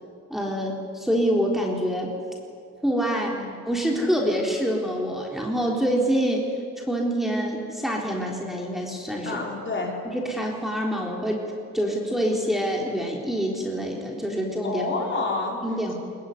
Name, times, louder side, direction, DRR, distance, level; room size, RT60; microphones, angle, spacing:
voice 1, 0.3-2.1 2.8-3.3 3.7-6.4 6.9-9.4 10.0-11.4 11.7-14.9 15.6-15.9, equal, ahead, -1 dB, 3.9 m, -26 dB
voice 2, 3.1-3.6 9.2-9.9 14.6-15.6, left 3 dB, 40° left, -1 dB, 5.6 m, -29 dB
21.5 x 20.0 x 9.6 m, 2.4 s
cardioid pair, 90°, 30 cm